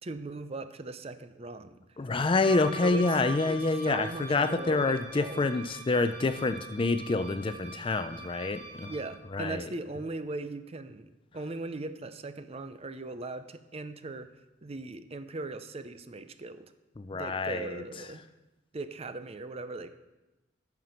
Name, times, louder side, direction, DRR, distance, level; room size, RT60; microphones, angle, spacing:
voice 1, 0.0-1.8 2.8-3.1 3.5-5.5 8.9-14.3 14.6-16.7 17.1-18.2 18.7-19.9, right 2 dB, 30° right, 11 dB, 0.5 m, -39 dB
voice 2, 2.0-8.9 9.3-9.7 17.0-17.8, left 3 dB, 25° left, 10 dB, 0.4 m, -27 dB
Wind instrument woodwind instrument, 2.4-9.1, right 3 dB, 50° right, 3.5 m, -44 dB
14.5 x 5.9 x 5.8 m, 1.0 s
head